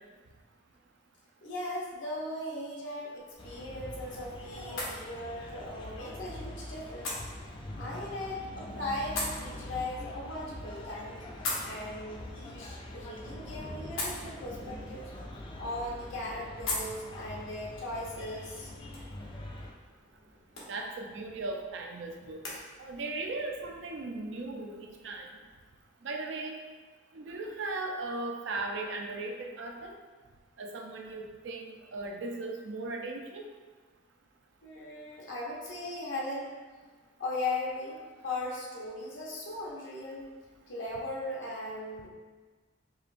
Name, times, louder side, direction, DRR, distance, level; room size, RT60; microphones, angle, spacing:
voice 1, 1.4-7.2 7.8-11.2 11.6-15.1 15.6-18.7 34.6-36.6 37.2-38.0 38.2-40.3 40.7-42.1, left 2 dB, 65° left, -4 dB, 0.7 m, -38 dB
sound 1, 3.1-22.6, left 2 dB, 85° left, 1.0 m, -43 dB
sound 2, 3.4-19.7, left 1 dB, 25° left, 0.4 m, -44 dB
Thunder, 6.1-25.8, equal, 80° right, 1.0 m, -54 dB
voice 2, 20.7-22.4 22.8-25.3 26.0-26.6 27.1-29.9 30.6-33.5, right 2 dB, 60° right, 1 dB, 0.5 m, -37 dB
5.0 x 2.9 x 2.5 m, 1.4 s
head